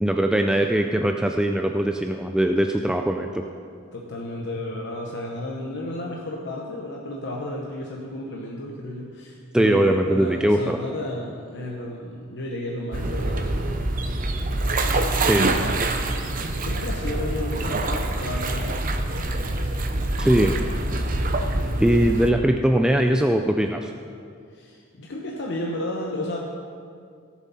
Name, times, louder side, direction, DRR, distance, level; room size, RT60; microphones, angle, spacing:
voice 1, 0.0-3.5 9.5-10.8 15.3-15.5 20.2-20.6 21.8-23.9, right 1 dB, 5° right, 4 dB, 0.3 m, -21 dB
voice 2, 3.9-15.7 16.1-16.3 16.6-18.9 19.3-20.2 20.4-20.7 20.9-21.0 21.7-21.9 24.5-26.4, left 1 dB, 55° left, -2 dB, 1.0 m, -33 dB
sound 1, 12.9-22.3, right 2 dB, 40° right, 0.7 m, -25 dB
17.5 x 7.3 x 4.2 m, 2.3 s
head